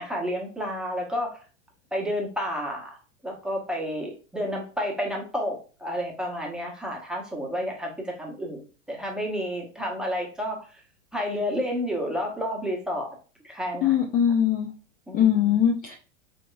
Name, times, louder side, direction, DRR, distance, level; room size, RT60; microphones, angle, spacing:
voice 1, 0.0-1.4 1.9-3.0 3.2-10.8 11.1-13.1 13.4-14.1 15.1-15.6, equal, ahead, -1 dB, 1.0 m, -31 dB
voice 2, 13.8-14.7 15.1-15.9, left 9 dB, 25° left, 1 dB, 0.5 m, -21 dB
3.9 x 2.8 x 2.3 m, 0.36 s
figure-of-eight pair, 95°, 36 cm